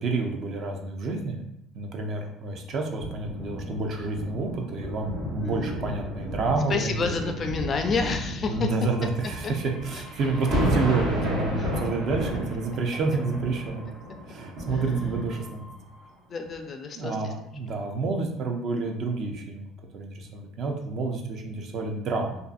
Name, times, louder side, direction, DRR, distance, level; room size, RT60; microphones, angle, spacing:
voice 1, 0.0-1.4 1.7-7.1 8.5-13.9 14.3-15.6 17.0-22.4, right 3 dB, 50° right, 3 dB, 0.5 m, -29 dB
sound 1, 2.9-15.7 16.4-16.6, equal, 70° right, 0.9 m, -33 dB
voice 2, 5.4-5.8 6.1-6.4 6.7-8.7 9.4-9.5 9.9-10.0 11.6-11.7 14.7-14.9 16.3-17.3, left 4 dB, 35° left, 5 dB, 0.3 m, -30 dB
sound 2, 8.9-11.4 11.8-16.3 17.1-17.6, equal, 25° right, 0.9 m, -49 dB
2.5 x 2.5 x 2.3 m, 0.77 s
cardioid pair, 115°, 0 cm